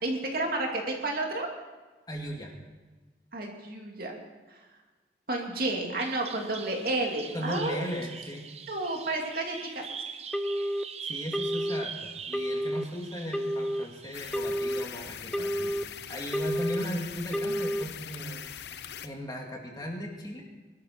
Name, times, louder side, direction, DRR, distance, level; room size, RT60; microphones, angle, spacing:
voice 1, 0.0-1.5 3.3-4.1 4.5-4.6 5.3-7.8 8.7-9.8, right 2 dB, 55° right, 1 dB, 2.7 m, -31 dB
voice 2, 2.1-2.5 7.3-8.4 11.0-18.4 19.0-20.4, equal, 25° left, 0 dB, 2.4 m, -37 dB
Bird vocalization bird call bird song, 6.0-14.4, right 6 dB, 35° right, 0.8 m, -43 dB
Telephone, 10.3-10.8 11.3-11.8 12.3-12.8 13.3-13.8 14.3-14.8 15.3-15.8 16.3-16.8 17.3-17.8, equal, 5° left, 0.7 m, -30 dB
sound 1, 14.1-19.1, left 9 dB, 70° left, 0.7 m, -42 dB
22.5 x 12.5 x 4.5 m, 1.3 s
head